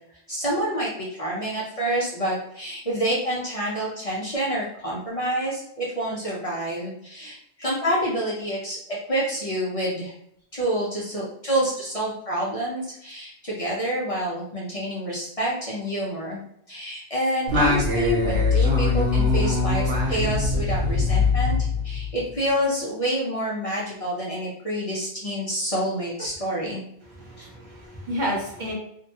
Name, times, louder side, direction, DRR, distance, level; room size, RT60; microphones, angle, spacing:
voice 1, 0.3-10.1 10.5-16.4 16.7-21.6 21.8-26.8 27.4-27.5, right 1 dB, 40° left, -6 dB, 0.6 m, -28 dB
Singing, 17.5-22.2, left 3 dB, 75° right, 1.0 m, -22 dB
voice 2, 27.0-28.7, equal, 50° right, -3 dB, 0.7 m, -31 dB
2.6 x 2.1 x 2.7 m, 0.73 s
omnidirectional pair, 1.1 m